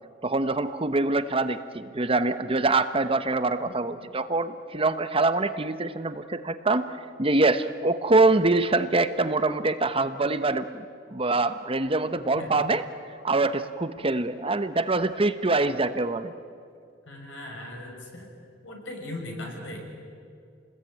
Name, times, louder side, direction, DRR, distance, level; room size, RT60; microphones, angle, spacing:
voice 1, 0.2-6.9 7.2-10.8 11.1-12.8 13.2-16.3, right 2 dB, 30° right, 11 dB, 1.0 m, -24 dB
voice 2, 17.1-18.3 18.6-19.8, left 1 dB, 85° left, 1 dB, 6.5 m, -38 dB
29.0 x 20.5 x 9.3 m, 2.4 s
head